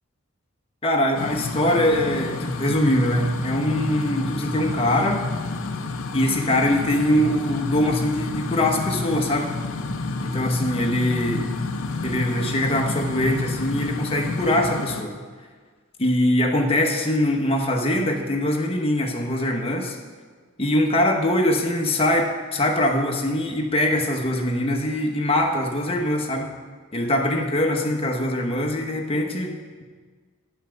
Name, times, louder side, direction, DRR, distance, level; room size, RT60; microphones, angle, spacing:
voice 1, 0.8-5.2 6.1-9.5 10.2-11.5 12.0-15.2 16.0-20.0 20.6-26.5 26.9-29.8, left 1 dB, 25° left, 2 dB, 1.0 m, -23 dB
sound 1, 1.1-15.0, left 3 dB, 70° left, 0.6 m, -29 dB
10.0 x 5.6 x 7.0 m, 1.5 s
head